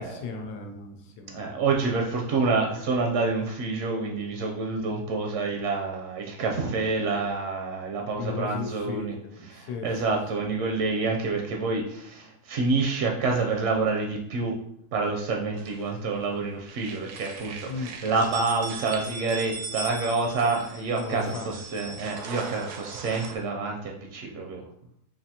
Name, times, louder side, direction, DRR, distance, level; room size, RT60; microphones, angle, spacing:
voice 1, 0.0-1.6 8.1-10.2 17.7-18.0 21.0-21.5, left 4 dB, 80° left, 5 dB, 1.2 m, -36 dB
voice 2, 1.3-9.1 9.5-14.6 14.9-24.6, right 3 dB, 65° right, 1 dB, 0.7 m, -28 dB
sound 1, 15.6-16.3 16.6-23.4, right 5 dB, 85° right, 1.1 m, -39 dB
5.5 x 2.5 x 2.8 m, 0.72 s
omnidirectional pair, 1.7 m